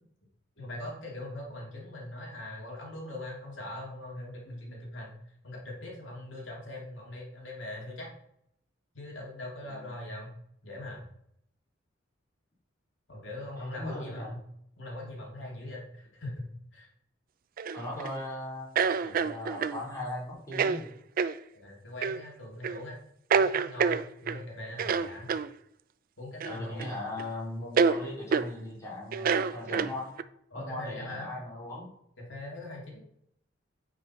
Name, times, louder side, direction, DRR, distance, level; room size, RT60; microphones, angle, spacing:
voice 1, 0.6-5.1 5.4-8.1 8.9-10.3 10.6-11.0 13.1-14.4 14.8-16.9 21.5-23.0 23.3-25.3 26.2-26.9 30.5-31.3 32.2-33.0, left 1 dB, 75° left, -2 dB, 2.3 m, -41 dB
voice 2, 9.6-10.0 13.6-14.3 17.7-20.9 26.4-30.1 30.5-31.8, left 1 dB, 15° left, -6 dB, 3.7 m, -38 dB
sound 1, 17.6-18.1 18.8-19.8 20.5-20.8 21.2-21.3 22.0-22.2 22.6-22.8 23.3-24.4 24.8-25.5 26.4-26.9 27.2-27.3 27.8-28.0 28.3-28.5 29.1-30.2, right 5 dB, 45° right, 0.4 m, -27 dB
9.8 x 4.7 x 4.2 m, 0.73 s
head